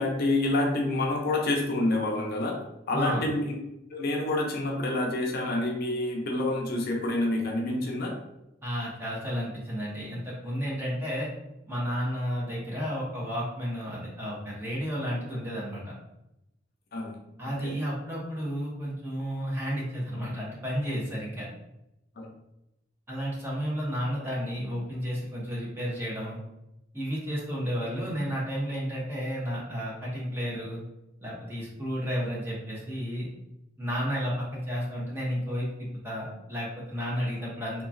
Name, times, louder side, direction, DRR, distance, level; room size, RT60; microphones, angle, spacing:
voice 1, 0.0-2.6 2.9-3.5 3.9-8.1 16.9-17.2 17.6-17.7 22.2-22.3, left 2 dB, 50° left, 0 dB, 0.5 m, -27 dB
voice 2, 2.9-3.2 8.6-11.3 11.7-15.9 17.4-21.5 23.1-26.4 26.9-30.8 31.2-33.3 33.8-37.8, equal, 10° right, -5 dB, 0.7 m, -32 dB
2.9 x 2.3 x 2.4 m, 0.87 s
head